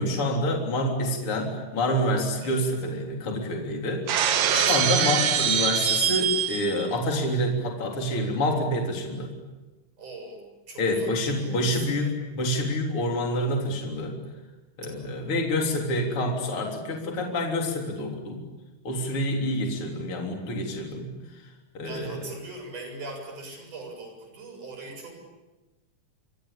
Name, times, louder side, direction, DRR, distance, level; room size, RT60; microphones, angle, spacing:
voice 1, 0.0-4.1 4.5-9.3 10.8-12.1 12.4-14.2 14.8-18.4 18.8-21.1 21.7-22.2, left 1 dB, 40° left, 1 dB, 4.3 m, -27 dB
voice 2, 2.4-2.7 4.3-5.4 10.0-12.1 14.8-15.3 21.8-25.1, right 2 dB, 65° right, 4 dB, 8.7 m, -41 dB
Shatter, 4.1-6.8, right 8 dB, 85° right, 3.3 m, -24 dB
29.0 x 24.0 x 8.6 m, 1.1 s
omnidirectional pair, 3.8 m